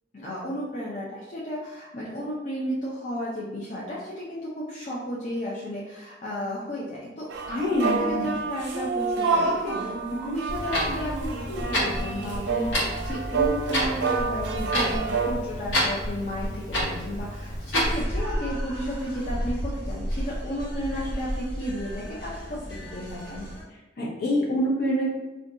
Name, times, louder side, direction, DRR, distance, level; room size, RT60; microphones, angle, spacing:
voice 1, 0.1-23.5, equal, 45° left, -7 dB, 0.5 m, -33 dB
sound 1, 7.3-15.3, right 4 dB, 65° right, 0.4 m, -28 dB
voice 2, 7.5-8.3 24.0-25.2, equal, 60° left, -5 dB, 0.9 m, -25 dB
Clock, 10.5-18.0, equal, 90° left, 1.0 m, -29 dB
sound 2, 17.8-23.6, equal, 20° left, 1.2 m, -32 dB
2.5 x 2.2 x 3.7 m, 1.1 s
head